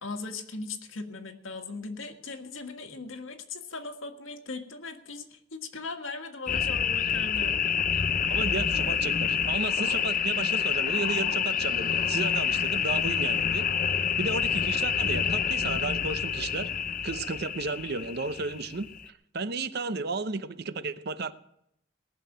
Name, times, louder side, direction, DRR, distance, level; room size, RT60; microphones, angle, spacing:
voice 1, 0.0-7.6, left 3 dB, 75° left, 5 dB, 1.7 m, -39 dB
sound 1, 6.5-19.1, left 7 dB, 40° left, 0.7 m, -28 dB
voice 2, 8.3-13.7 14.2-16.7 17.0-21.3, right 3 dB, 50° right, 13 dB, 0.7 m, -33 dB
18.5 x 6.8 x 9.0 m, 0.75 s
head